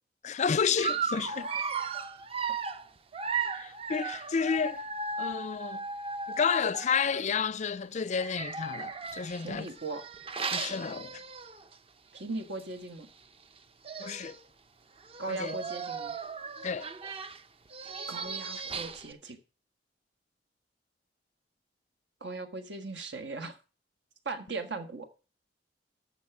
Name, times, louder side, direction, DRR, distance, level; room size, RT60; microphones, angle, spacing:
voice 1, 0.2-1.5 3.5-4.8 5.2-5.8 6.3-9.7 10.5-11.2 14.0-14.4 15.3-15.6 16.6-16.9, left 6 dB, 40° left, 0.4 m, -31 dB
Dog, 0.8-7.4 8.1-11.7 12.2-12.3 12.6-12.7 13.6-13.7 13.8-14.4 15.0-19.1, right 4 dB, 35° right, 0.7 m, -36 dB
voice 2, 1.4-1.8 9.4-10.0 12.1-13.1 15.2-16.1 18.1-19.4 22.2-23.6 24.3-25.1, right 3 dB, 75° right, 1.7 m, -38 dB
13.5 x 4.9 x 6.0 m
head